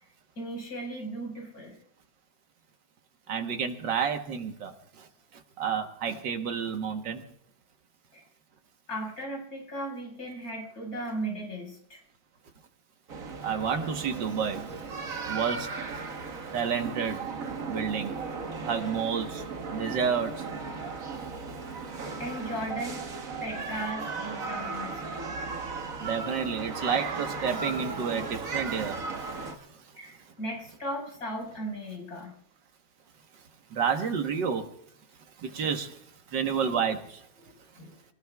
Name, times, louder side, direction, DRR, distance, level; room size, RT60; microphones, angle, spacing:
voice 1, 0.4-1.7 8.1-8.2 8.9-12.0 18.6-18.8 22.2-23.1 23.4-25.2 30.0-32.3 37.8-38.0, right 1 dB, 45° left, 0 dB, 5.7 m, -36 dB
voice 2, 3.3-5.1 5.3-7.2 13.4-14.9 15.2-16.2 16.5-17.2 17.7-18.1 18.7-19.4 19.7-20.5 26.0-29.4 33.7-34.7 35.4-36.0 36.3-37.2, right 6 dB, 65° right, 5 dB, 1.8 m, -30 dB
sound 1, 13.1-29.6, right 4 dB, 45° right, 1.5 m, -36 dB
25.5 x 19.0 x 2.3 m, 0.65 s
omnidirectional pair, 2.2 m